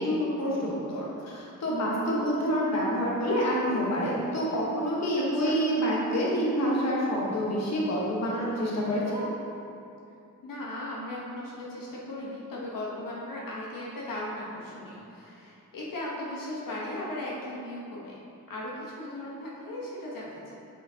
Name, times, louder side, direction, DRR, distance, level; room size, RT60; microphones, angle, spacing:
voice 1, 0.0-9.3, equal, 50° left, -5 dB, 1.2 m, -27 dB
voice 2, 10.4-18.1 18.5-20.5, left 1 dB, 80° left, -5 dB, 1.1 m, -37 dB
7.7 x 5.7 x 2.8 m, 2.7 s
wide cardioid pair, 170°, 33 cm